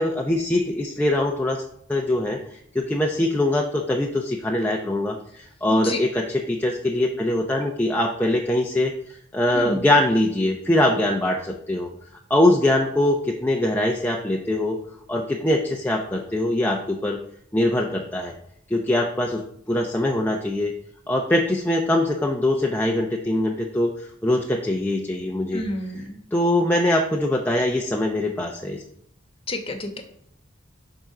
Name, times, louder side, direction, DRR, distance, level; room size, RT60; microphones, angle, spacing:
voice 1, 0.0-1.6 1.9-11.9 12.3-14.8 15.1-17.2 17.5-18.3 18.7-20.7 21.1-25.6 26.3-28.8, left 1 dB, 10° left, 0 dB, 0.6 m, -22 dB
voice 2, 5.7-6.0 9.5-9.8 25.5-26.2 29.5-30.0, left 1 dB, 30° left, 5 dB, 1.2 m, -29 dB
10.5 x 3.9 x 6.0 m, 0.71 s
head